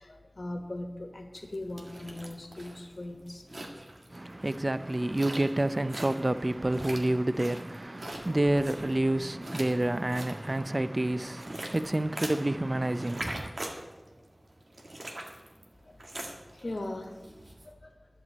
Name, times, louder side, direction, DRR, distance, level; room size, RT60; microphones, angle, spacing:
voice 1, 0.0-3.5 15.8-16.0 16.5-17.3 17.6-17.9, left 1 dB, 75° left, 1.3 m, -39 dB
sound 1, 1.3-17.7, right 1 dB, 85° right, 1.8 m, -43 dB
voice 2, 4.1-13.5, right 1 dB, 40° right, 0.5 m, -29 dB
11.5 x 6.9 x 8.5 m
wide cardioid pair, 50°, 0 cm